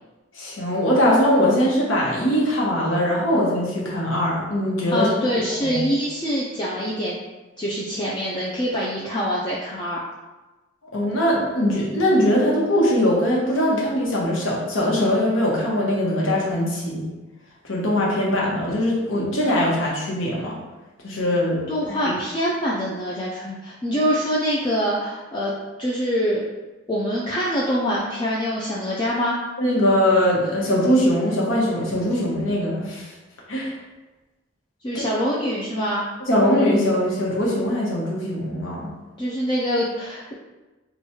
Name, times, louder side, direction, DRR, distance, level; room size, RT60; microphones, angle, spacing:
voice 1, 0.3-5.1 5.6-5.8 10.9-17.0 17.6-20.6 21.0-22.0 29.6-33.1 33.5-33.7 34.9-35.0 36.3-38.9, left 1 dB, 85° left, -4 dB, 1.0 m, -21 dB
voice 2, 4.9-7.2 7.6-10.0 21.7-25.5 25.8-26.4 26.9-29.4 34.8-36.0 39.2-40.3, equal, 25° left, -6 dB, 0.4 m, -24 dB
3.0 x 2.3 x 4.2 m, 1.2 s
head